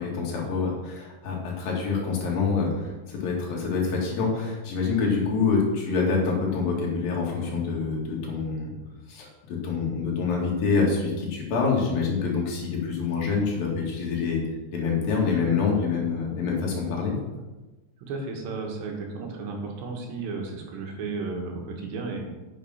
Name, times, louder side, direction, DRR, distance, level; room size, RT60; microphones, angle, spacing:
voice 1, 0.0-8.7 9.1-14.4 14.7-17.2, left 5 dB, 60° left, -2 dB, 3.8 m, -26 dB
voice 2, 18.0-22.2, right 4 dB, 85° right, 1 dB, 3.9 m, -33 dB
9.1 x 7.6 x 5.7 m, 1.1 s
omnidirectional pair, 4.8 m